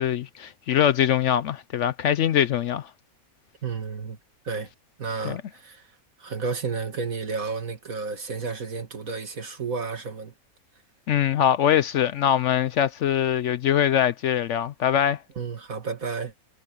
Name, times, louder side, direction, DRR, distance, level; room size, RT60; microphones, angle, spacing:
voice 1, 0.0-2.9 5.2-5.4 11.1-15.2, left 10 dB, 65° left, 0.8 m, -23 dB
voice 2, 3.6-4.2 4.4-4.7 5.0-5.9 6.2-10.3 15.4-16.3, right 4 dB, 70° right, 2.6 m, -31 dB
omnidirectional pair, 1.5 m